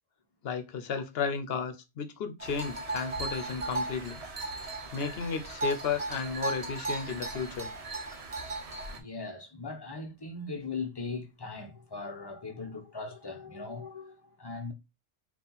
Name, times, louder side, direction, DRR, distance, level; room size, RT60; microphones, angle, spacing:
voice 1, 0.4-4.2 4.9-7.7, left 6 dB, 65° left, 0.9 m, -33 dB
sound 1, 2.4-9.0, right 2 dB, 40° right, 0.7 m, -36 dB
voice 2, 9.0-14.7, left 4 dB, 25° left, 0.7 m, -39 dB
4.2 x 2.5 x 3.9 m
omnidirectional pair, 1.1 m